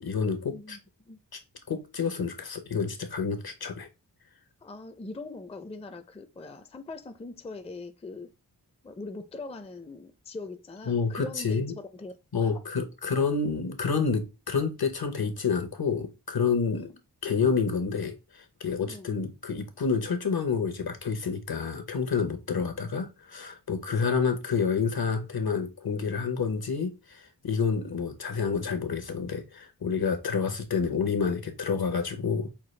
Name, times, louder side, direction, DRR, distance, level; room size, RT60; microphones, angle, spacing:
voice 1, 0.0-0.8 1.3-1.4 1.7-3.9 10.9-11.7 12.3-16.9 17.2-32.5, left 5 dB, 70° left, 0.9 m, -29 dB
voice 2, 4.6-8.3 8.8-11.6 11.9-12.6 16.7-16.9 18.9-19.1, left 3 dB, 15° left, 0.4 m, -42 dB
5.7 x 2.3 x 3.2 m
wide cardioid pair, 75°, 39 cm